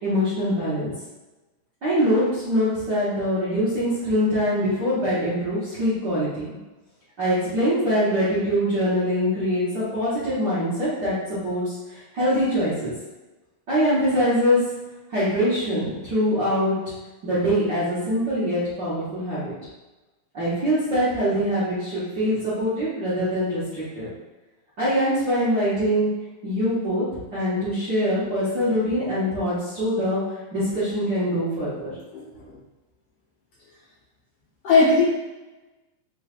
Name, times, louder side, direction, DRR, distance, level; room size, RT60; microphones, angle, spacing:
voice 1, 0.0-0.9 1.8-6.5 7.2-11.6 12.1-12.9 13.7-14.6 15.1-16.7 17.2-19.5 20.3-24.1 24.8-26.1 26.4-27.0 27.3-30.2 30.5-31.9, equal, 60° right, -12 dB, 1.1 m, -23 dB
voice 2, 32.1-32.6 34.6-35.0, left 3 dB, 65° left, -8 dB, 1.6 m, -19 dB
4.7 x 3.2 x 2.4 m, 1.1 s
omnidirectional pair, 3.5 m